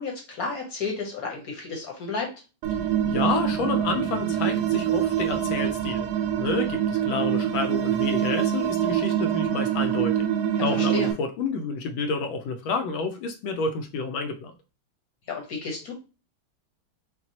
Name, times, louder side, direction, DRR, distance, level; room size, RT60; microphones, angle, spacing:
voice 1, 0.0-2.3 10.5-11.1 15.3-15.9, left 4 dB, 55° left, 0 dB, 1.2 m, -32 dB
sound 1, 2.6-11.1, right 10 dB, 90° right, 1.5 m, -25 dB
voice 2, 3.0-6.1 6.4-10.3 10.6-14.5, left 4 dB, 75° left, 7 dB, 1.3 m, -29 dB
5.9 x 2.3 x 2.8 m, 0.31 s
omnidirectional pair, 2.3 m